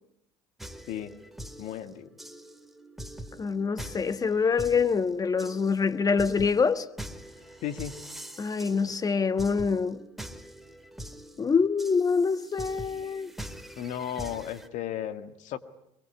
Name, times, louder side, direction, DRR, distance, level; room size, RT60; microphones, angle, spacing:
sound 1, 0.6-14.7, right 1 dB, ahead, 2.3 m, -44 dB
voice 1, 1.6-2.1 7.6-8.0 13.8-15.6, left 10 dB, 60° left, 2.0 m, -35 dB
voice 2, 3.4-6.9 8.4-10.0 11.4-13.3, left 5 dB, 25° left, 1.4 m, -25 dB
24.0 x 23.0 x 9.7 m
hypercardioid pair, 85°, 14 cm